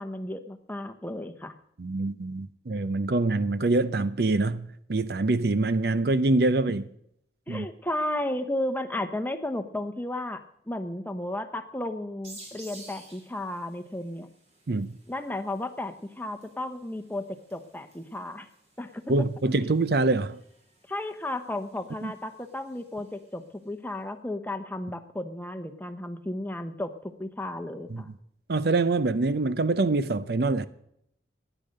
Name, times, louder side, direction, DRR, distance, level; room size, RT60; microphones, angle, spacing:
voice 1, 0.0-1.5 7.5-14.3 15.1-18.5 18.8-19.0 20.9-28.1, left 1 dB, 10° left, 0.9 m, -34 dB
voice 2, 1.8-6.9 7.5-7.7 14.7-15.0 19.1-20.4 22.0-22.1 27.9-28.0 28.5-30.7, right 2 dB, 55° right, 0.5 m, -25 dB
sound 1, 12.2-23.6, right 2 dB, 35° right, 3.4 m, -54 dB
14.0 x 10.0 x 6.5 m
head